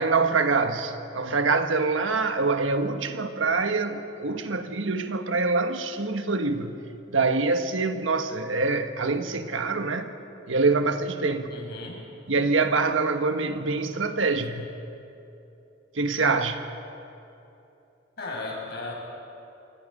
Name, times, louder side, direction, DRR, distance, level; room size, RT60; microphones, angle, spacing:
voice 1, 0.0-6.8 7.1-10.1 10.5-11.5 12.3-14.7 15.9-16.7, right 3 dB, 90° right, 7 dB, 1.4 m, -25 dB
voice 2, 11.5-12.0 18.2-18.9, left 3 dB, 55° left, -2 dB, 6.5 m, -35 dB
27.5 x 24.5 x 5.4 m, 2.9 s
head